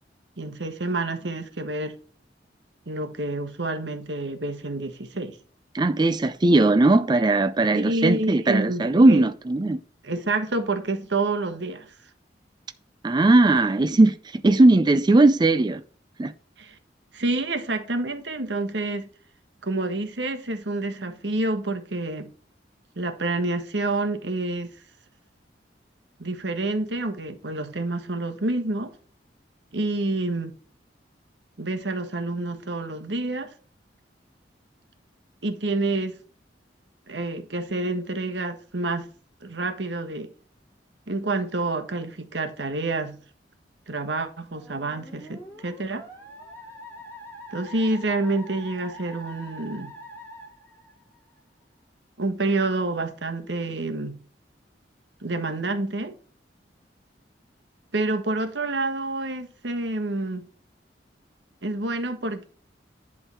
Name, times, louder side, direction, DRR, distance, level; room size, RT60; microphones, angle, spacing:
voice 1, 0.4-2.0 2.9-5.4 7.6-9.3 10.0-11.9 16.6-16.8 17.1-19.1 19.6-22.3 22.9-24.7 26.2-28.9 29.7-30.5 31.6-33.5 35.4-36.1 37.1-39.1 39.4-40.3 41.1-43.2 43.9-46.0 47.5-49.9 52.2-54.2 55.2-56.1 57.9-60.4 61.6-62.5, right 2 dB, 85° right, 1.4 m, -28 dB
voice 2, 5.7-9.8 13.0-15.8 16.2-16.3, right 2 dB, 25° right, 0.4 m, -18 dB
Musical instrument, 44.5-51.4, equal, 10° left, 3.9 m, -44 dB
11.0 x 3.8 x 5.7 m
head